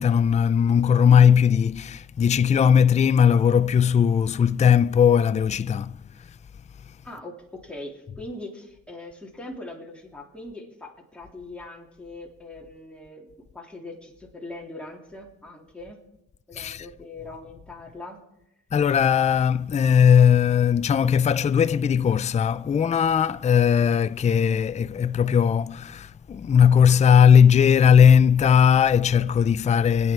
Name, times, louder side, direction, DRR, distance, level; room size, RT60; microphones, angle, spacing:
voice 1, 0.0-6.0 16.5-16.9 18.7-30.1, left 7 dB, 25° left, 0.4 m, -18 dB
voice 2, 7.0-16.0 16.5-18.2, left 2 dB, 5° left, 3.2 m, -41 dB
25.5 x 9.4 x 4.5 m
cardioid pair, 90°, 30 cm